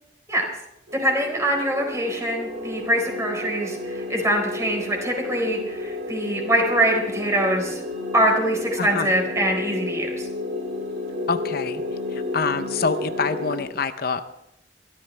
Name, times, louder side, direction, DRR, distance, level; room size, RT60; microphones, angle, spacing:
sound 1, 0.9-13.6, left 2 dB, 70° right, 3.1 m, -32 dB
voice 1, 1.0-7.8 8.1-10.3, right 1 dB, 15° right, 1 dB, 4.2 m, -23 dB
voice 2, 8.8-9.1 11.3-11.8 12.1-14.2, left 5 dB, 60° left, 10 dB, 0.7 m, -26 dB
23.0 x 13.5 x 3.3 m, 0.83 s
head